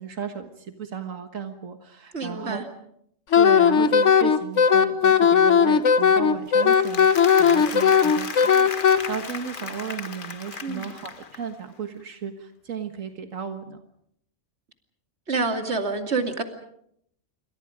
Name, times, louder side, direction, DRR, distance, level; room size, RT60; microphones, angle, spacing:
voice 1, 0.0-2.7 3.3-13.8, right 7 dB, 90° right, 6 dB, 1.9 m, -35 dB
voice 2, 2.1-2.6 10.6-10.9 15.3-16.4, right 3 dB, 55° right, 5 dB, 2.7 m, -27 dB
Wind instrument woodwind instrument, 3.3-9.0, left 7 dB, 70° left, 1.4 m, -17 dB
Applause, 6.6-11.6, left 5 dB, 45° left, 1.3 m, -36 dB
28.0 x 24.0 x 5.2 m, 0.72 s
omnidirectional pair, 1.3 m